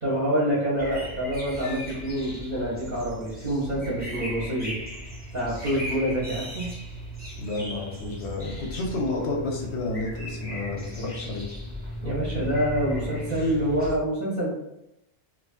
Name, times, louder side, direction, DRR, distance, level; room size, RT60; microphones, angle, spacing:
voice 1, 0.0-4.8 5.3-6.6 12.0-14.5, equal, 50° right, -6 dB, 0.7 m, -26 dB
sound 1, 0.8-13.9, equal, 15° right, 0.4 m, -37 dB
voice 2, 7.4-11.4, left 2 dB, 65° left, 0 dB, 0.7 m, -31 dB
2.5 x 2.2 x 2.3 m, 0.88 s
omnidirectional pair, 1.4 m